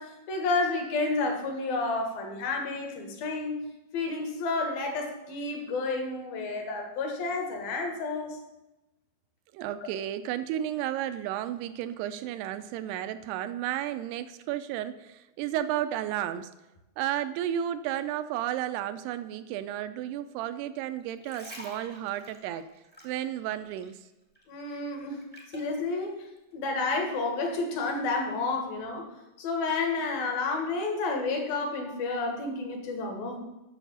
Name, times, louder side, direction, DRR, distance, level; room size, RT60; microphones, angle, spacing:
voice 1, 0.0-3.6 3.9-8.4 9.8-9.9 24.5-25.2 25.5-26.3 26.5-29.1 29.4-33.4, left 3 dB, 65° left, 3 dB, 3.1 m, -30 dB
voice 2, 9.5-16.5 17.0-22.7 23.0-24.0, right 11 dB, 80° right, 11 dB, 2.5 m, -33 dB
sound 1, 21.0-24.1 24.3-25.8 26.4-26.5, equal, 10° left, 0.6 m, -47 dB
9.3 x 6.8 x 6.9 m, 1.0 s
omnidirectional pair, 5.0 m